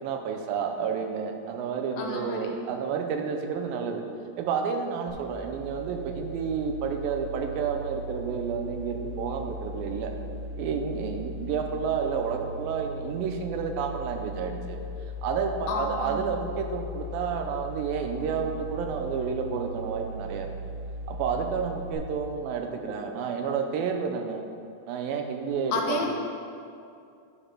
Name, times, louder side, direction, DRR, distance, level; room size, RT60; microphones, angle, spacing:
voice 1, 0.0-4.1 4.4-10.1 10.6-14.8 15.2-20.5 21.1-24.4 24.9-26.1, right 6 dB, 90° right, 4 dB, 2.5 m, -30 dB
voice 2, 2.0-2.5 15.7-16.1 25.7-26.1, left 4 dB, 80° left, 1 dB, 2.5 m, -30 dB
sound 1, 5.1-21.9, right 1 dB, 65° right, 2.2 m, -38 dB
9.6 x 5.1 x 5.8 m, 2.5 s
omnidirectional pair, 4.2 m